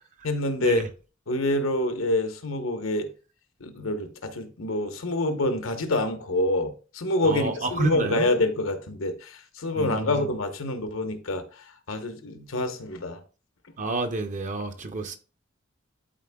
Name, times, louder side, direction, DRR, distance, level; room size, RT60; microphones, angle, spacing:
voice 1, 0.2-0.8 1.3-3.1 3.6-11.4 11.9-13.2, left 1 dB, 80° left, 1.1 m, -27 dB
voice 2, 7.2-8.3 9.8-10.3 13.8-15.2, right 2 dB, 40° right, 0.7 m, -29 dB
11.0 x 4.3 x 2.3 m
head